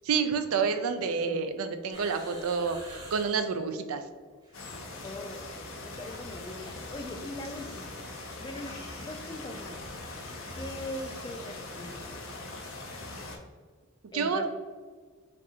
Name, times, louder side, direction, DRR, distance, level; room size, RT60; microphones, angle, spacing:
voice 1, 0.1-4.0 14.1-14.5, right 5 dB, 75° right, 8 dB, 0.4 m, -29 dB
voice 2, 0.6-1.5 5.0-8.0 8.4-9.8 10.5-12.2 14.1-14.5, left 1 dB, 20° left, 5 dB, 0.3 m, -41 dB
sound 1, 1.9-3.5 4.3-5.0 5.2-5.6 6.2-12.9 13.1-13.2, equal, 20° right, 1.2 m, -51 dB
sound 2, 4.5-13.4, left 2 dB, 60° left, 0.6 m, -41 dB
5.3 x 2.6 x 2.8 m, 1.6 s
head